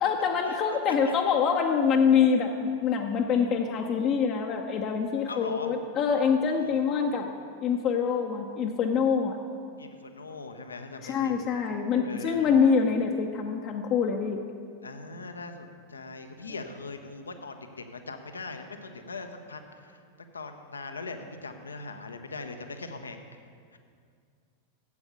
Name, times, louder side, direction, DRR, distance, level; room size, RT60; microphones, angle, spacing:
voice 1, 0.0-7.3 7.6-9.4 11.0-14.4, left 6 dB, 35° left, 1 dB, 0.7 m, -25 dB
voice 2, 5.3-5.7 6.5-7.3 9.8-11.3 12.0-12.6 14.8-20.0 20.3-23.2 23.7-23.8, left 3 dB, 75° left, 7 dB, 0.8 m, -41 dB
8.3 x 8.0 x 8.1 m, 2.2 s
figure-of-eight pair, 90°, 0 cm